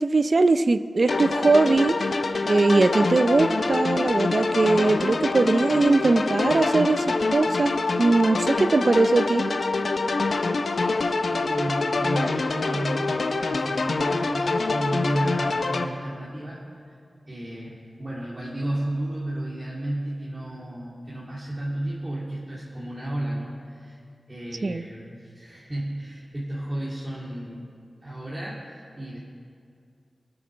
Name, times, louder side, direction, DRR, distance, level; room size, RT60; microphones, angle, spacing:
voice 1, 0.0-2.0 2.5-9.4 24.6-24.8, right 3 dB, 50° right, 11 dB, 0.5 m, -21 dB
sound 1, 1.1-15.8, left 3 dB, 70° left, 0.9 m, -25 dB
voice 2, 10.6-13.1 13.4-16.6 16.8-16.9 17.3-24.0 24.3-27.8 28.0-29.2, right 1 dB, 25° right, -7 dB, 2.7 m, -32 dB
23.5 x 7.9 x 6.3 m, 2.3 s
wide cardioid pair, 90°, 0 cm